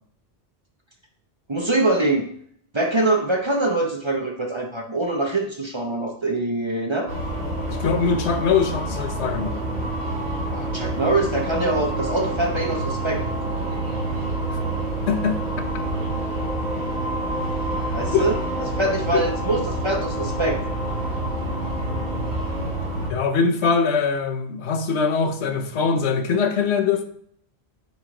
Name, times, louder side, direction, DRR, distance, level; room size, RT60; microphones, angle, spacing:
voice 1, 1.5-2.3 2.7-7.1 10.5-13.2 17.9-18.3 18.7-20.6, right 2 dB, 30° right, 2 dB, 0.7 m, -24 dB
sound 1, 7.1-23.1, right 1 dB, 80° right, 2.4 m, -27 dB
voice 2, 7.7-9.6 14.5-14.6 15.1-15.4 18.1-18.3 19.1-19.2 23.1-27.0, left 5 dB, 85° left, 7 dB, 1.0 m, -22 dB
9.1 x 3.2 x 3.7 m, 0.63 s
omnidirectional pair, 1.1 m